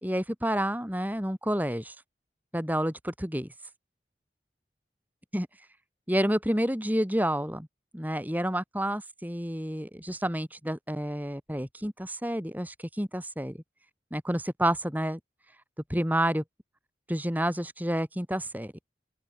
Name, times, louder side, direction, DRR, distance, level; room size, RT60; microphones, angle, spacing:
voice 1, 0.0-1.9 2.5-3.5 5.3-5.5 6.1-7.7 7.9-13.6 14.1-15.2 15.9-16.4 17.1-18.7, right 1 dB, 10° right, 4.7 m, -29 dB
open air
head